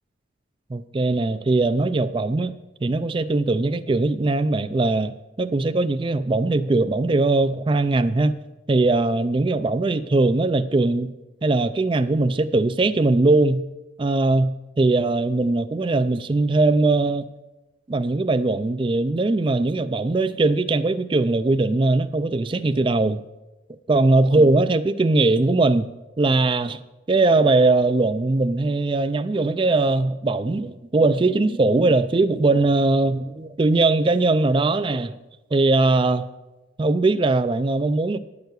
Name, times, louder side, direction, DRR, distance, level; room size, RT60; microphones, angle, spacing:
voice 1, 0.7-5.1 5.4-8.4 8.7-11.1 11.4-13.6 14.0-17.3 17.9-23.2 23.9-25.9 26.2-26.8 27.1-35.2 35.5-36.2 36.8-38.2, right 2 dB, 25° right, 0.3 m, -20 dB
10.5 x 6.8 x 8.0 m
head